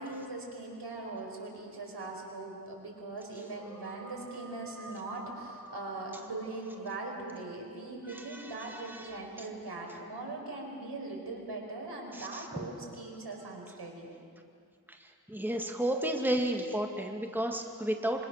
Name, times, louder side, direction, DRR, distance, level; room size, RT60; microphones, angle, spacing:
voice 1, 0.0-14.1, right 2 dB, 80° right, 0 dB, 5.3 m, -41 dB
sound 1, 3.4-7.5, right 1 dB, 50° left, 3.8 m, -49 dB
voice 2, 8.1-9.5 12.1-12.7 14.9-18.2, right 1 dB, 5° right, 2 dB, 2.0 m, -33 dB
26.0 x 25.0 x 6.6 m, 2.3 s
wide cardioid pair, 75°, 39 cm